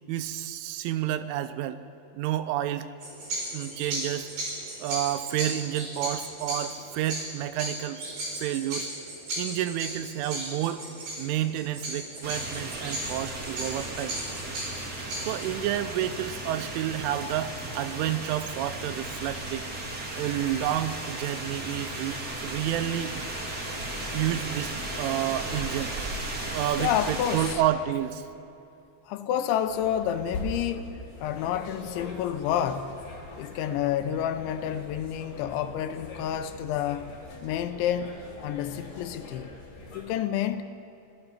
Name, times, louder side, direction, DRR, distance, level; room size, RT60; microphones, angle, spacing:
voice 1, 0.1-1.8 2.1-2.9 3.5-4.3 4.8-8.9 9.4-10.8 11.2-14.2 15.2-19.7 20.2-23.3 24.1-25.9 26.5-28.2, right 12 dB, 85° right, 3.3 m, -30 dB
sound 1, 3.0-15.6, right 1 dB, 55° right, 6.2 m, -36 dB
sound 2, 12.2-27.5, right 1 dB, 35° right, 1.6 m, -35 dB
voice 2, 26.8-27.6 29.1-32.9 33.4-37.1 37.4-38.2 38.4-39.5 39.9-40.6, left 10 dB, 80° left, 3.0 m, -29 dB
sound 3, 29.6-40.0, left 2 dB, 45° left, 4.7 m, -42 dB
25.5 x 18.0 x 5.7 m
omnidirectional pair, 5.5 m